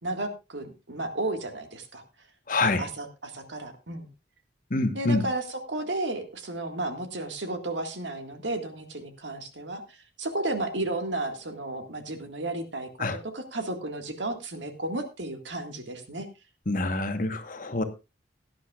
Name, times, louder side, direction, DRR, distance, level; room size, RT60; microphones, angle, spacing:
voice 1, 0.0-2.0 2.6-4.1 4.9-12.9 13.3-16.3, right 2 dB, 85° right, 6 dB, 1.9 m, -33 dB
voice 2, 2.5-2.9 4.7-5.3 13.0-13.2 16.7-17.8, left 2 dB, 45° left, 8 dB, 1.2 m, -26 dB
17.5 x 10.0 x 2.4 m, 0.27 s
head